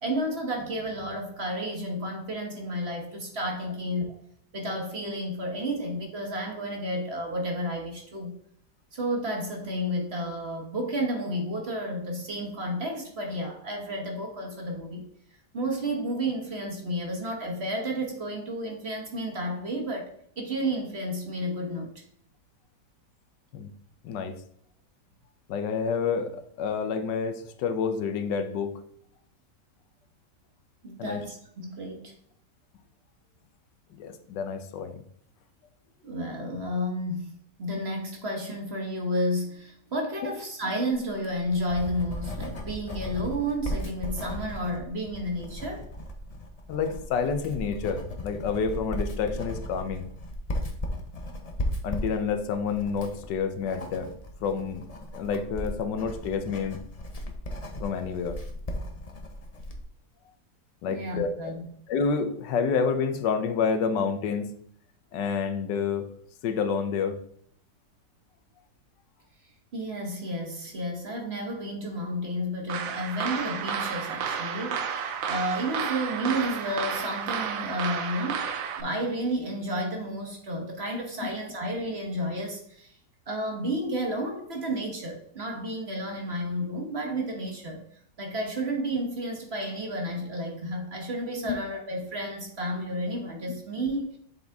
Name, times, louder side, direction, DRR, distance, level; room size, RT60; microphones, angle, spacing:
voice 1, 0.0-4.1 4.5-8.4 8.9-15.1 15.5-21.9 30.8-32.1 36.0-45.9 60.9-61.6 69.7-78.5 78.8-83.0 83.3-87.8 88.2-94.2, equal, 40° right, 2 dB, 1.2 m, -31 dB
voice 2, 25.5-28.7 31.0-31.2 33.9-35.0 46.7-50.1 51.8-54.1 54.4-54.9 55.1-56.8 57.8-58.4 60.8-61.3 61.9-64.5 65.1-66.1 66.4-67.2 91.4-91.6, left 6 dB, 90° left, 8 dB, 1.4 m, -28 dB
Writing, 41.2-59.8, left 1 dB, 35° left, 0.6 m, -36 dB
sound 1, 72.7-78.8, right 7 dB, 65° right, 0.9 m, -32 dB
7.5 x 3.9 x 3.5 m, 0.65 s
omnidirectional pair, 1.8 m